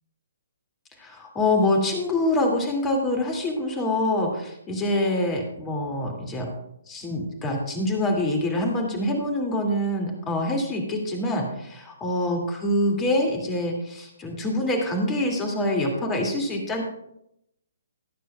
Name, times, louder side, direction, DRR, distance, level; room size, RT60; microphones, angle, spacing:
voice 1, 1.0-6.5 6.9-16.8, left 1 dB, 15° left, 2 dB, 2.3 m, -25 dB
18.0 x 9.1 x 2.3 m, 0.79 s
figure-of-eight pair, 130°, 0 cm